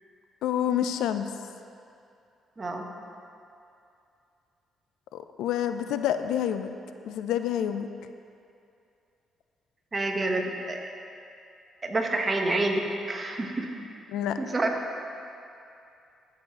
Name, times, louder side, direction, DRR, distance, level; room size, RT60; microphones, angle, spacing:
voice 1, 0.4-1.3 5.1-6.7 7.1-7.9 14.1-14.4, left 10 dB, 85° left, 9 dB, 0.3 m, -28 dB
voice 2, 2.6-2.9 9.9-10.9 11.8-13.7 14.4-14.7, right 2 dB, 30° right, 2 dB, 1.0 m, -28 dB
14.0 x 6.4 x 2.9 m, 2.6 s
cardioid pair, 90°, 0 cm